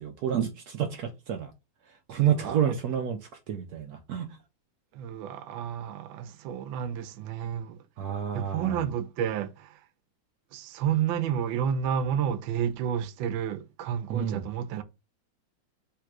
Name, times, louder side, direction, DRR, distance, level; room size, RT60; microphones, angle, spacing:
voice 1, 0.0-1.5 2.1-3.2 3.5-4.3 8.0-8.8 14.1-14.4, right 9 dB, 90° right, 0.8 m, -29 dB
voice 2, 2.2-2.6 4.9-7.8 8.3-9.7 10.5-14.8, right 8 dB, 75° right, 1.3 m, -30 dB
3.6 x 2.8 x 4.6 m
omnidirectional pair, 2.4 m